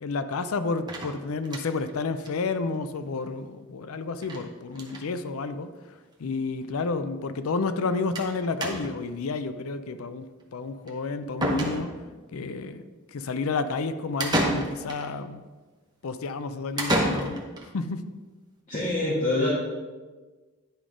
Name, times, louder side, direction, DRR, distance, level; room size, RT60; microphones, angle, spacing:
voice 1, 0.0-5.7 6.2-10.3 10.5-11.9 12.3-12.8 13.1-15.4 16.0-17.5 17.7-18.0, left 4 dB, 75° left, 11 dB, 0.5 m, -30 dB
sound 1, 0.9-1.9 2.3-2.4 2.6-2.7 3.0-3.1 4.2-4.5 4.7-5.1 5.9-6.0 6.3-6.4 8.2-8.3 8.6-9.1 10.9-11.0 11.4-12.2 14.2-15.1 16.8-17.7, right 1 dB, 20° right, 0.9 m, -29 dB
voice 2, 18.7-19.5, left 2 dB, 35° left, -8 dB, 1.7 m, -25 dB
10.5 x 3.8 x 4.9 m, 1.3 s
head